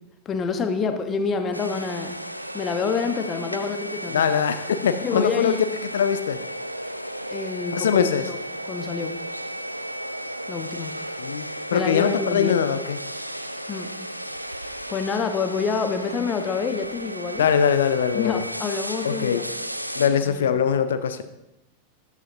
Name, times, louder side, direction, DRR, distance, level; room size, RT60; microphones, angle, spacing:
voice 1, 0.2-2.1 2.5-4.3 5.0-5.6 7.3-8.0 8.3-9.2 10.5-10.9 11.7-12.6 13.7-13.9 14.9-17.4 18.1-19.5 20.3-20.5, left 5 dB, 25° left, 7 dB, 1.1 m, -27 dB
sound 1, 1.5-20.1, equal, 90° right, 0.7 m, -34 dB
voice 2, 4.1-5.6 5.9-6.4 7.7-8.3 11.2-13.0 17.4-18.4 19.0-19.4 20.0-21.2, left 7 dB, 65° left, 11 dB, 0.6 m, -22 dB
13.5 x 10.5 x 2.8 m, 0.94 s
figure-of-eight pair, 90°, 0 cm